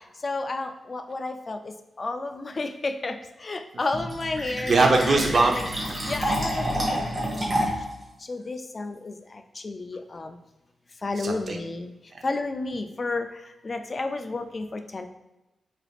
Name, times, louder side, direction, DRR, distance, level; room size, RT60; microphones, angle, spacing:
voice 1, 0.2-1.6 2.0-3.2 3.4-4.7 5.4-5.6 6.1-6.8 8.3-9.1 9.6-10.3 11.0-11.9 12.2-13.3 13.6-15.1, left 3 dB, 40° left, 7 dB, 0.3 m, -31 dB
Fill (with liquid), 3.9-7.9, equal, 35° right, 1.3 m, -28 dB
voice 2, 4.4-6.0 11.2-11.6 12.1-12.2, right 3 dB, 50° right, 3 dB, 0.6 m, -23 dB
4.9 x 3.3 x 2.4 m, 1.0 s
wide cardioid pair, 100°, 0 cm